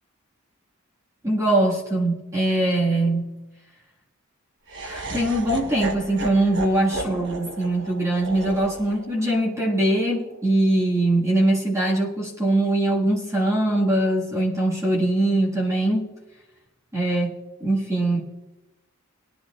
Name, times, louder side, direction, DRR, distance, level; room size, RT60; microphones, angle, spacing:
voice 1, 1.2-3.4 4.8-16.1 16.9-17.3 17.6-18.2, right 1 dB, 15° right, -5 dB, 1.7 m, -22 dB
Laughter, 4.7-10.8, right 2 dB, 60° right, 1.1 m, -35 dB
20.5 x 10.5 x 2.4 m, 1.0 s
head